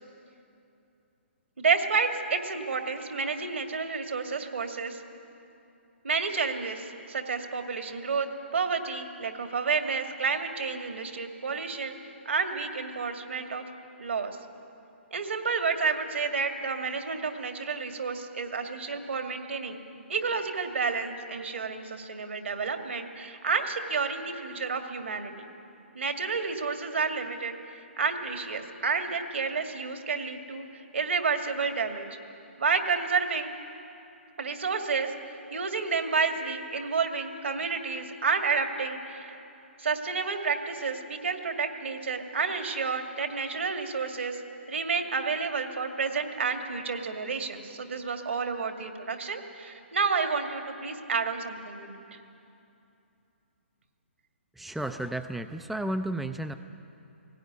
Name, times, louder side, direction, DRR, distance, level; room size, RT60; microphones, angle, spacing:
voice 1, 1.6-5.0 6.0-8.3 8.5-11.9 12.3-13.6 14.0-14.4 15.1-19.8 20.1-25.5 25.9-27.5 28.0-30.7 30.9-32.1 32.6-33.5 34.4-39.4 39.8-44.4 44.7-52.0, right 5 dB, 70° right, 5 dB, 2.2 m, -30 dB
voice 2, 54.6-56.6, right 1 dB, ahead, 8 dB, 0.5 m, -32 dB
18.0 x 17.5 x 9.6 m, 2.8 s
figure-of-eight pair, 135°, 7 cm